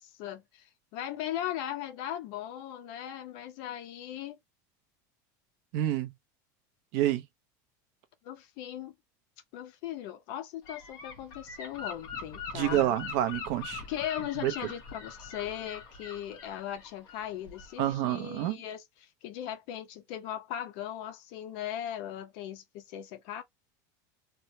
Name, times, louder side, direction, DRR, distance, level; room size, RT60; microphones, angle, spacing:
voice 1, 0.0-4.4 8.2-8.9 9.5-12.8 13.9-23.4, left 11 dB, 55° left, 0.7 m, -38 dB
voice 2, 5.7-6.1 6.9-7.2 12.5-13.8 14.4-14.5 17.8-18.6, right 13 dB, 60° right, 0.6 m, -28 dB
Gull seagull / Wind, 10.7-17.9, left 5 dB, 35° left, 1.0 m, -43 dB
3.2 x 2.1 x 2.7 m
supercardioid pair, 165°, 10 cm